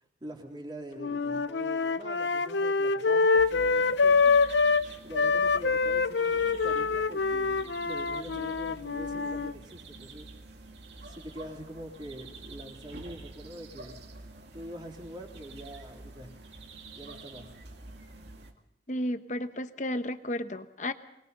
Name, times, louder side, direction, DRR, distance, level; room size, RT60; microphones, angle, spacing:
voice 1, 0.2-4.3 5.0-10.3 11.0-14.0 14.5-16.3 16.9-17.5, right 1 dB, 25° right, 0 dB, 3.5 m, -44 dB
sound 1, 1.0-4.8 5.1-9.5, left 4 dB, 80° left, 0.7 m, -25 dB
sound 2, 3.4-18.5, right 2 dB, 70° right, 2.2 m, -48 dB
voice 2, 18.9-20.9, left 1 dB, 40° left, 10 dB, 1.1 m, -33 dB
24.5 x 21.0 x 5.6 m, 0.82 s
head